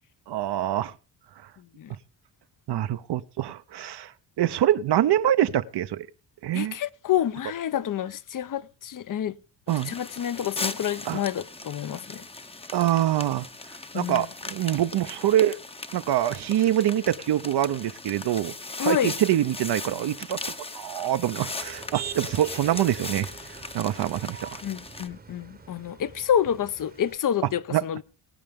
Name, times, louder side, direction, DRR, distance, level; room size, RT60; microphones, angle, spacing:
voice 1, 0.3-0.9 2.7-4.1 4.4-6.1 6.4-6.7 9.7-9.9 11.1-11.2 12.7-13.5 13.9-15.6 15.9-18.5 18.8-20.4 20.7-23.3 23.7-24.6 27.7-27.8, right 12 dB, 65° right, 0.6 m, -25 dB
voice 2, 6.5-9.3 9.8-12.2 13.9-14.3 18.8-19.1 24.6-28.0, left 10 dB, 50° left, 0.6 m, -28 dB
sound 1, 9.7-25.1, left 2 dB, 15° left, 0.7 m, -38 dB
Motor vehicle (road), 21.6-27.2, right 6 dB, 20° right, 0.9 m, -43 dB
22.5 x 8.7 x 3.5 m
cardioid pair, 115°, 42 cm